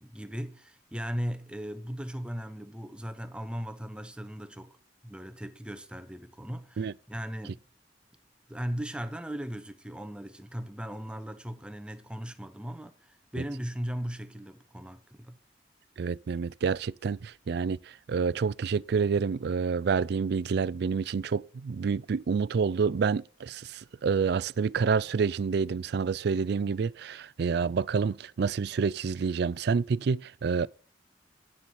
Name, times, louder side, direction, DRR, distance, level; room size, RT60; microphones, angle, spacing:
voice 1, 0.0-4.7 5.0-7.6 8.5-15.4, equal, 5° right, 0.7 m, -38 dB
voice 2, 16.0-30.7, right 5 dB, 60° right, 0.4 m, -28 dB
9.7 x 7.1 x 5.7 m
head